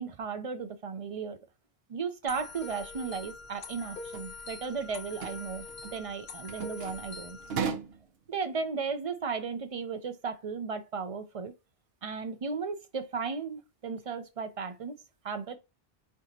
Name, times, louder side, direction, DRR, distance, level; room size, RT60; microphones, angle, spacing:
voice 1, 0.0-1.4 1.9-7.4 8.3-11.5 12.0-15.0 15.2-15.6, right 5 dB, 40° right, 0.5 m, -35 dB
sound 1, 2.3-7.6, left 4 dB, 65° left, 1.1 m, -44 dB
sound 2, 3.8-4.2 4.7-4.8 5.1-5.4 5.7-5.9 6.5-7.0 7.4-8.0, right 6 dB, 70° right, 0.9 m, -35 dB
4.8 x 3.5 x 2.7 m
omnidirectional pair, 1.0 m